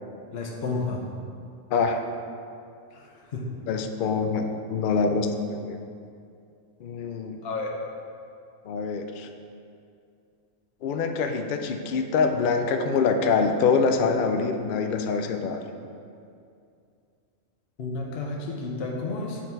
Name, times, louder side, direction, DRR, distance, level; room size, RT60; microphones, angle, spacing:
voice 1, 0.3-1.0 2.9-3.5 7.4-7.7 17.8-19.4, left 3 dB, 55° left, -1 dB, 1.0 m, -31 dB
voice 2, 1.7-2.0 3.7-5.8 6.8-7.4 8.7-9.3 10.8-15.6, left 5 dB, 70° left, 5 dB, 0.4 m, -25 dB
7.9 x 4.1 x 4.5 m, 2.5 s
omnidirectional pair, 1.4 m